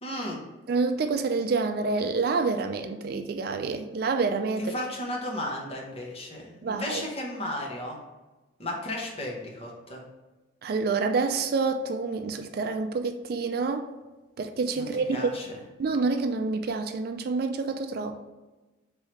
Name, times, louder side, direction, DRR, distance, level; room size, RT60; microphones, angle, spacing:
voice 1, 0.0-0.4 4.7-8.0 8.6-10.0 14.8-15.5, left 1 dB, 30° left, -1 dB, 0.9 m, -34 dB
voice 2, 0.7-4.7 6.6-7.0 10.6-13.9 14.4-15.2 15.8-18.2, right 4 dB, 50° right, 6 dB, 0.3 m, -28 dB
3.6 x 3.1 x 4.4 m, 1.2 s
head